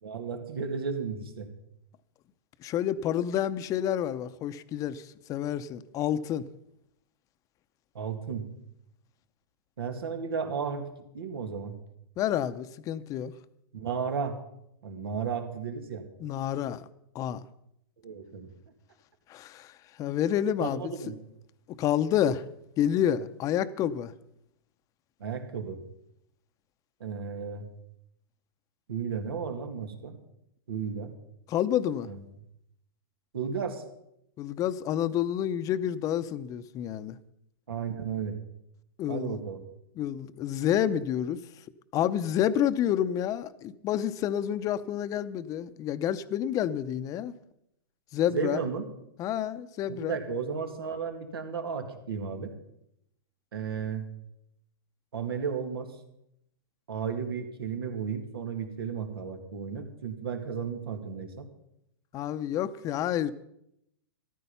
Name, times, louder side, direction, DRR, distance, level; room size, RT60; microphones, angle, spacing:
voice 1, 0.0-1.5 7.9-8.5 9.8-10.9 11.1-11.8 13.7-14.4 14.8-16.1 18.0-18.5 20.6-21.1 25.2-25.8 27.0-27.7 28.9-30.2 30.7-31.1 32.0-32.2 33.3-33.8 37.7-38.4 39.1-39.6 48.3-48.8 49.9-52.5 53.5-54.1 55.1-55.9 56.9-61.5, right 6 dB, 85° right, 2.3 m, -34 dB
voice 2, 2.6-6.4 12.2-13.3 16.2-16.9 17.1-17.4 19.3-19.7 20.0-20.9 21.7-22.4 22.8-24.1 31.5-32.1 34.4-37.1 39.0-39.4 40.0-41.4 41.9-47.3 48.1-48.6 49.2-50.2 62.1-63.3, left 10 dB, 30° left, 0.7 m, -29 dB
14.0 x 12.5 x 5.6 m
hypercardioid pair, 135°, 12 cm